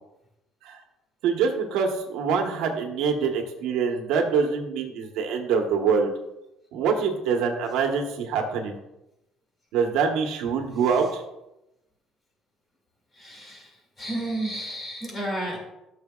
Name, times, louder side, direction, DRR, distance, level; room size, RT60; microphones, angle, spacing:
voice 1, 1.2-6.1 6.7-8.8 9.7-11.2, right 5 dB, 85° right, 3 dB, 1.2 m, -25 dB
voice 2, 13.1-15.6, right 1 dB, 25° left, 0 dB, 2.4 m, -32 dB
13.0 x 6.6 x 2.4 m, 0.89 s
cardioid pair, 160°, 0 cm